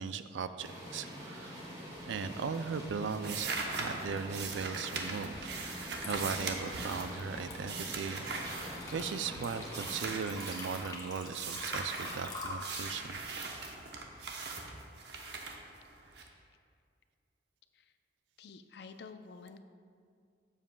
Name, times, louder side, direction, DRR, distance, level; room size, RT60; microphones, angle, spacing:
voice 1, 0.0-1.6 2.1-5.5 6.1-8.6 8.9-13.2, right 5 dB, 80° right, 11 dB, 0.4 m, -38 dB
sound 1, 0.6-10.1, equal, 20° right, 2.1 m, -46 dB
sound 2, 1.9-2.3 2.6-9.3 9.7-10.9 11.3-16.2, right 4 dB, 60° right, 0.8 m, -40 dB
Water / Liquid, 5.3-5.5 5.9-14.5, left 2 dB, 20° left, 1.0 m, -46 dB
voice 2, 18.4-19.6, left 4 dB, 60° left, 9 dB, 0.4 m, -50 dB
12.5 x 7.3 x 2.2 m, 2.2 s
head